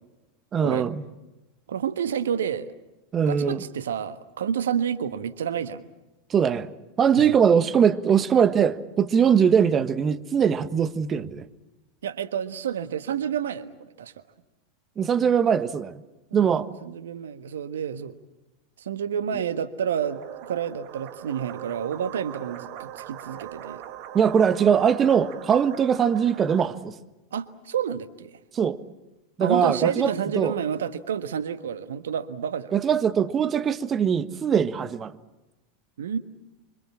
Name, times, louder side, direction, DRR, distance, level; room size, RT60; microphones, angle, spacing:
voice 1, 0.5-1.0 3.1-3.6 6.3-6.7 7.0-11.4 15.0-16.0 16.3-16.7 24.1-26.9 28.5-28.8 29.4-30.5 32.7-35.2, right 7 dB, 30° right, 14 dB, 1.4 m, -21 dB
voice 2, 1.7-2.7 3.2-5.8 7.1-7.3 12.0-14.2 16.3-18.1 18.8-23.8 27.3-28.4 29.4-32.7 36.0-36.2, right 8 dB, 70° right, 12 dB, 1.4 m, -29 dB
sound 1, 20.0-26.7, right 11 dB, 50° right, 1.7 m, -41 dB
26.0 x 25.5 x 7.3 m, 1.0 s
figure-of-eight pair, 85°, 0 cm